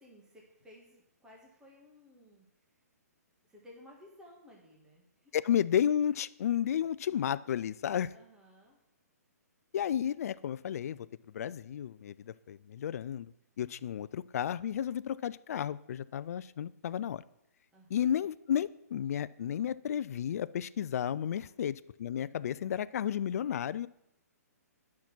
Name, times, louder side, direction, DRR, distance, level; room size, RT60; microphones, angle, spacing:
voice 1, 0.0-2.5 3.4-5.3 8.1-8.8 17.7-18.0 21.3-21.5, left 1 dB, 5° right, -2 dB, 1.5 m, -57 dB
voice 2, 5.3-8.1 9.7-11.1 11.3-13.3 13.6-17.2 17.9-23.9, left 9 dB, 60° left, 16 dB, 0.3 m, -32 dB
9.5 x 5.9 x 6.0 m, 0.81 s
hypercardioid pair, 150°, 9 cm